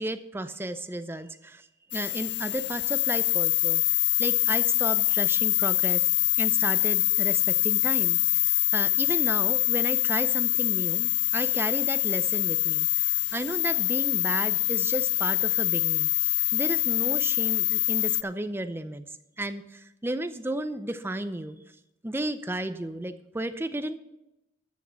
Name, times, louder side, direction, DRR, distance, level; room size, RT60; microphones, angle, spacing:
voice 1, 0.0-3.8 4.2-6.0 6.4-19.0 19.4-21.6 22.0-24.0, right 1 dB, 15° right, 10 dB, 0.6 m, -33 dB
sound 1, 1.9-18.2, left 19 dB, 65° left, 0.3 m, -25 dB
13.5 x 6.4 x 5.8 m, 0.90 s
head